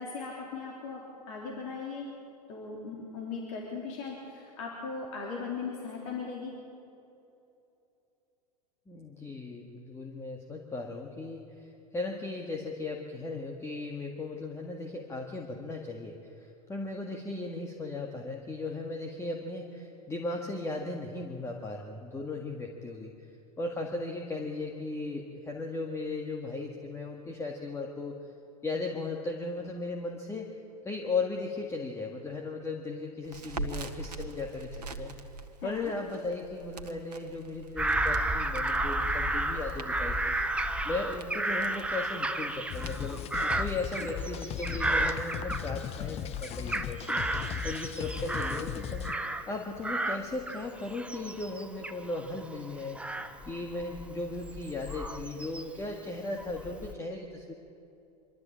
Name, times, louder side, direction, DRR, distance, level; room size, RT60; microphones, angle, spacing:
voice 1, 0.0-2.1 2.5-6.5 35.6-35.9, left 4 dB, 55° left, -2 dB, 3.6 m, -38 dB
voice 2, 8.9-23.1 23.6-28.2 28.6-30.5 30.8-35.1 35.6-40.4 40.8-43.2 43.6-49.1 49.5-53.2 53.5-57.5, left 3 dB, 15° left, 1 dB, 1.9 m, -37 dB
Crackle, 33.2-43.7, right 3 dB, 75° right, 1.5 m, -44 dB
Bird vocalization bird call bird song / Crow, 37.8-46.1 46.4-49.6 49.8-55.9 56.4-56.9, right 1 dB, 5° right, 1.1 m, -33 dB
sound 1, 42.7-49.1, left 8 dB, 30° left, 0.9 m, -37 dB
25.0 x 13.0 x 8.7 m, 2.8 s
figure-of-eight pair, 95°, 21 cm